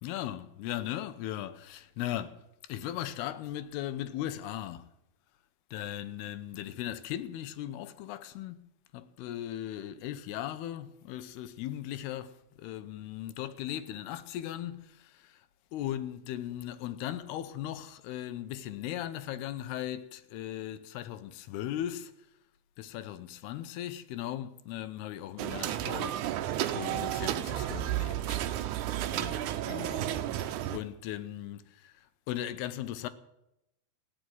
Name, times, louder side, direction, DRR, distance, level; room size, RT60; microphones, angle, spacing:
voice 1, 0.0-4.9 5.7-8.6 8.9-15.5 15.7-22.1 22.8-28.4 29.1-33.1, left 12 dB, 85° left, 2.8 m, -38 dB
sound 1, 25.4-30.8, right 12 dB, 80° right, 1.7 m, -32 dB
15.5 x 9.7 x 9.2 m
omnidirectional pair, 4.5 m